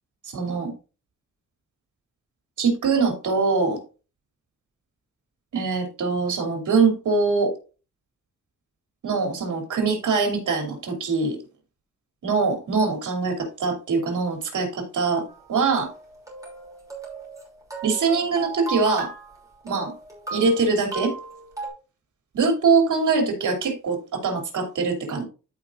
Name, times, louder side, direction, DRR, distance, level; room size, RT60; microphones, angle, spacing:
voice 1, 0.2-0.7 2.6-3.8 5.5-7.5 9.0-11.4 12.2-15.9 17.8-19.1 19.6-19.9 20.3-21.1 22.3-25.2, right 4 dB, 75° right, 3 dB, 3.0 m, -23 dB
sound 1, 15.3-21.7, right 3 dB, 10° right, 2.9 m, -37 dB
14.0 x 4.9 x 2.5 m, 0.33 s
wide cardioid pair, 150°, 31 cm